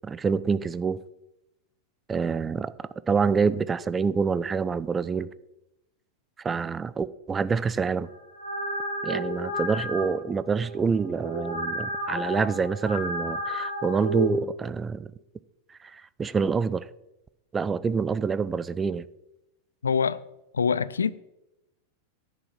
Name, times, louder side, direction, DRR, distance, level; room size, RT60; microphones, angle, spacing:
voice 1, 0.0-1.0 2.1-5.3 6.4-8.1 9.0-15.1 15.8-16.9 17.5-19.1, right 5 dB, 15° right, 0.4 m, -27 dB
sound 1, 8.1-14.3, equal, 85° right, 1.7 m, -32 dB
voice 2, 19.8-20.2 20.5-21.1, left 6 dB, 70° left, 0.4 m, -24 dB
10.0 x 5.2 x 7.3 m
figure-of-eight pair, 90°, 0 cm